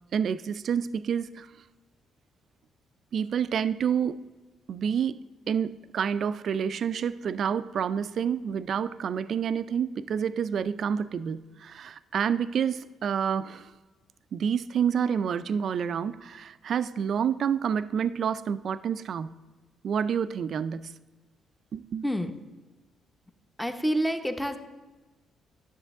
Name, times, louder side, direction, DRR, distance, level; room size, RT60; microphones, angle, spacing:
voice 1, 0.1-1.5 3.1-4.2 4.7-13.7 14.3-19.4 19.8-20.9 21.7-22.0, right 7 dB, 60° right, 15 dB, 0.3 m, -28 dB
voice 2, 23.6-24.6, equal, 5° left, 7 dB, 0.7 m, -27 dB
10.0 x 6.8 x 3.6 m, 1.2 s
cardioid pair, 90°, 0 cm